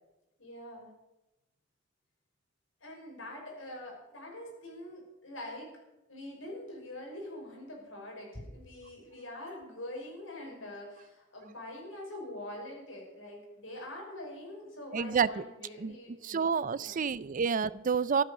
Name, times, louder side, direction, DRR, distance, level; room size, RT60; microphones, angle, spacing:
voice 1, 0.4-0.9 2.8-5.7 6.1-16.5 16.7-17.0, left 1 dB, 80° left, 0 dB, 5.8 m, -44 dB
voice 2, 14.9-15.4 15.8-16.0 16.2-18.2, right 6 dB, 45° right, 19 dB, 0.4 m, -29 dB
14.0 x 12.0 x 6.5 m, 0.97 s
head